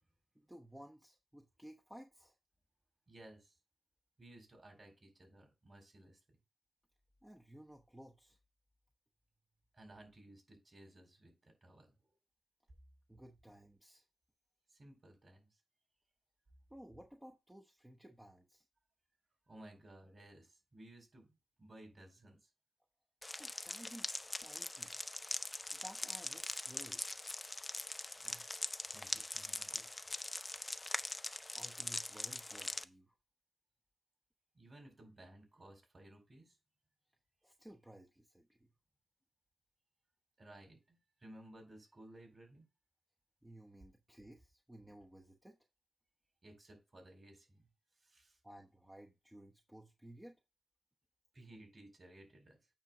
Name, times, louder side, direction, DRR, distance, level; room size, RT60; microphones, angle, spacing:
voice 1, 0.3-2.3 7.2-8.4 13.1-14.0 16.7-18.6 23.4-25.0 25.7-27.1 31.6-33.1 37.4-38.7 43.4-45.6 48.4-50.4, right 1 dB, 10° right, 0.9 m, -56 dB
voice 2, 3.1-3.5 4.2-6.2 9.7-11.9 14.7-15.5 19.5-22.4 28.2-28.5 28.9-29.9 34.5-36.6 40.4-42.6 46.4-47.6 48.0-48.4 51.3-52.6, right 1 dB, 40° right, 4.0 m, -58 dB
sound 1, 23.2-32.8, left 2 dB, 20° left, 0.5 m, -42 dB
8.8 x 3.0 x 6.0 m
cardioid pair, 75°, 0 cm